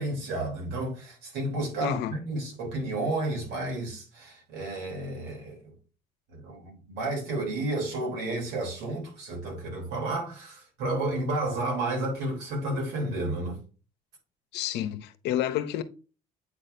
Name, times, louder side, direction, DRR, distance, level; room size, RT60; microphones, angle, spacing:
voice 1, 0.0-5.7 6.3-13.6, right 2 dB, 85° right, 3.4 m, -31 dB
voice 2, 1.8-2.2 14.5-15.8, left 11 dB, 80° left, 0.7 m, -29 dB
8.4 x 4.2 x 2.7 m
cardioid pair, 110°, 17 cm